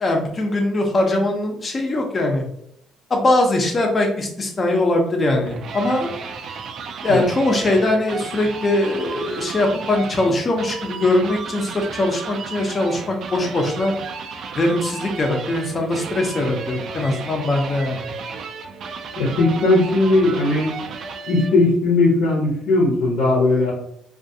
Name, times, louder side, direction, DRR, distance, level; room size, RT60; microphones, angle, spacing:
voice 1, 0.0-2.4 3.1-6.1 7.0-13.9 14.5-18.0, left 1 dB, 35° left, 2 dB, 0.7 m, -21 dB
sound 1, 5.2-21.7, right 5 dB, 60° right, 0.3 m, -33 dB
voice 2, 19.2-20.7 21.3-23.7, left 2 dB, 80° left, -4 dB, 0.9 m, -18 dB
2.4 x 2.4 x 2.6 m, 0.70 s
supercardioid pair, 80°, 0 cm